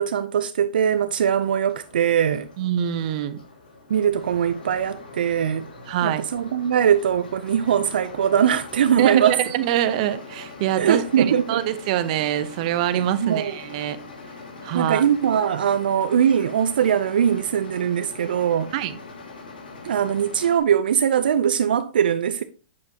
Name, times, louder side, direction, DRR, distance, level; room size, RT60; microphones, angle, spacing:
voice 1, 0.0-2.5 3.9-5.6 6.0-9.4 10.8-11.7 12.9-13.6 14.7-18.7 19.8-22.4, right 8 dB, 75° right, 0.5 m, -21 dB
sound 1, 0.7-20.6, left 3 dB, 85° left, 3.1 m, -42 dB
voice 2, 2.6-3.4 5.9-6.2 9.0-14.0 14.6-15.0 18.7-19.0, right 11 dB, 50° right, 0.8 m, -25 dB
8.4 x 6.6 x 2.9 m
hypercardioid pair, 135°, 5 cm